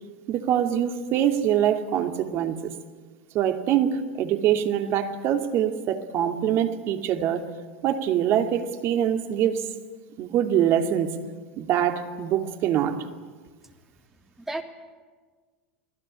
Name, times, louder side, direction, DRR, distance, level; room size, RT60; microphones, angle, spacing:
voice 1, 0.3-2.7 3.3-7.5 7.8-9.7 10.2-11.2 11.6-13.0, right 10 dB, 45° right, 2.4 m, -24 dB
voice 2, 14.2-14.6, right 2 dB, 5° right, 3.2 m, -35 dB
29.5 x 19.0 x 8.8 m
figure-of-eight pair, 80°, 6 cm